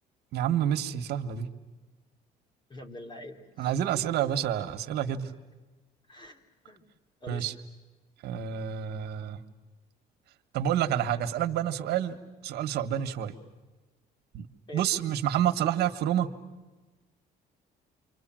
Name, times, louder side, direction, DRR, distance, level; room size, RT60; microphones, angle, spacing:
voice 1, 0.3-1.5 3.6-5.3 7.3-7.5 8.2-9.4 10.5-12.2 12.4-13.3 14.3-14.5 14.7-16.3, right 10 dB, 75° right, 7 dB, 1.7 m, -28 dB
voice 2, 2.7-3.8 4.2-4.3 6.1-6.8 7.2-7.5 14.7-14.9, left 1 dB, 25° left, 5 dB, 3.5 m, -45 dB
29.5 x 25.5 x 7.7 m, 1.2 s
cardioid pair, 110°, 17 cm